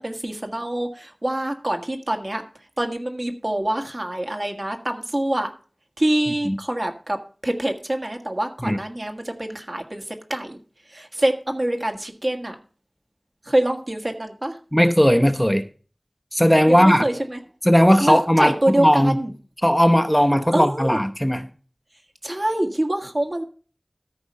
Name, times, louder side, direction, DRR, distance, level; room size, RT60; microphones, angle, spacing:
voice 1, 0.0-2.4 2.8-5.5 6.0-10.6 10.9-12.6 13.4-14.6 16.7-17.4 18.0-19.3 20.5-21.0 22.2-23.4, right 1 dB, 55° right, 1.7 m, -25 dB
voice 2, 14.7-15.6 16.3-17.0 17.6-19.2 19.6-21.4, equal, 5° left, 0.8 m, -17 dB
13.5 x 5.0 x 5.5 m
wide cardioid pair, 45°, 0 cm